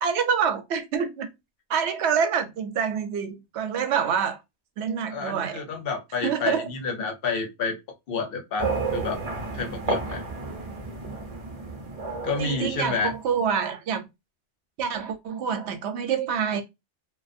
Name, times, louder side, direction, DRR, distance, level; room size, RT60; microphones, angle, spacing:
voice 1, 0.0-1.3 1.7-4.4 4.8-5.6 6.2-6.7 12.4-14.1 14.8-16.6, right 7 dB, 75° right, 0.8 m, -26 dB
voice 2, 5.1-7.8 8.1-9.2 9.5-10.2 12.2-13.1, left 4 dB, 65° left, 0.7 m, -29 dB
sound 1, 8.6-13.4, right 4 dB, 40° right, 0.6 m, -31 dB
2.4 x 2.2 x 2.5 m
omnidirectional pair, 1.1 m